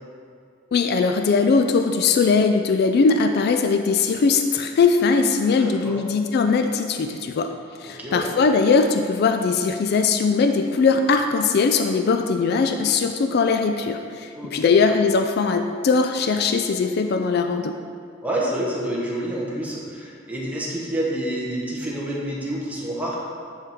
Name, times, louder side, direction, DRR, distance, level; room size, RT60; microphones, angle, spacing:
voice 1, 0.7-7.5 7.8-17.8, left 4 dB, 55° left, 6 dB, 0.3 m, -20 dB
voice 2, 5.6-6.0 7.9-8.3 14.3-14.8 18.2-23.2, right 1 dB, 10° right, -5 dB, 1.2 m, -28 dB
9.9 x 4.4 x 3.6 m, 2.3 s
head